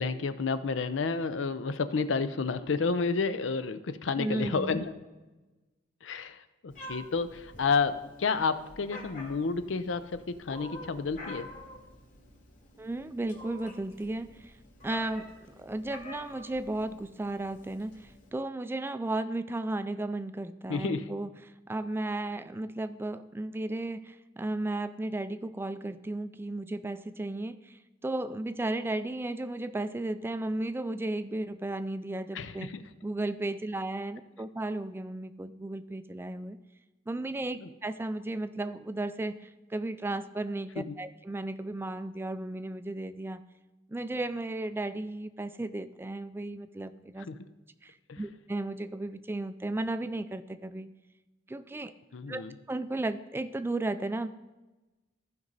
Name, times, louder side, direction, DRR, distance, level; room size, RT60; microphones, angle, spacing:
voice 1, 0.0-4.9 6.0-11.5 20.7-21.1 32.3-32.8 37.6-37.7 40.8-41.0 47.3-47.5 48.1-48.2 52.1-52.5, left 4 dB, 80° left, 12 dB, 0.6 m, -30 dB
voice 2, 4.2-4.8 12.8-14.5 14.8-15.3 15.6-21.3 21.7-32.7 33.0-36.6 37.1-43.4 43.9-47.3 47.8-50.9 51.5-51.9 52.3-52.4 52.7-54.3, right 2 dB, 10° right, 12 dB, 0.3 m, -34 dB
Meow, 6.7-18.3, left 1 dB, 40° left, 2.0 m, -48 dB
15.0 x 5.3 x 4.0 m, 1.1 s
head